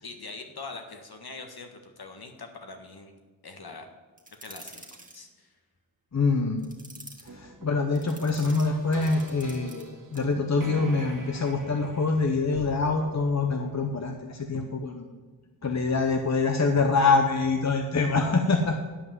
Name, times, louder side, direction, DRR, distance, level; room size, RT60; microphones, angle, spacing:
voice 1, 0.0-3.2 3.4-3.9 4.3-4.9 5.1-5.5, left 3 dB, 55° left, 5 dB, 1.6 m, -43 dB
sound 1, 4.2-5.2 6.6-7.3 7.9-9.8 10.1-10.3, right 1 dB, 15° right, 1.9 m, -47 dB
voice 2, 6.1-6.7 7.3-15.0 15.6-18.8, left 3 dB, 35° left, 4 dB, 1.0 m, -25 dB
sound 2, 7.3-14.2, right 2 dB, 45° right, 1.8 m, -44 dB
10.0 x 5.4 x 7.8 m, 1.4 s
cardioid pair, 45°, 46 cm